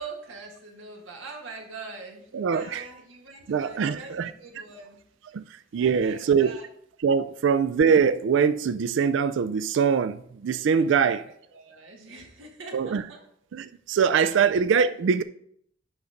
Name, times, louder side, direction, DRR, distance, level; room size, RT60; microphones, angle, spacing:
voice 1, 0.0-5.1 5.8-6.7 10.9-13.3 14.3-14.4, right 4 dB, 85° right, 1.8 m, -43 dB
voice 2, 2.3-2.9 3.5-4.3 5.3-6.6 7.0-11.2 12.7-13.0 13.5-15.2, right 6 dB, 70° right, 0.3 m, -23 dB
11.0 x 4.0 x 5.0 m
head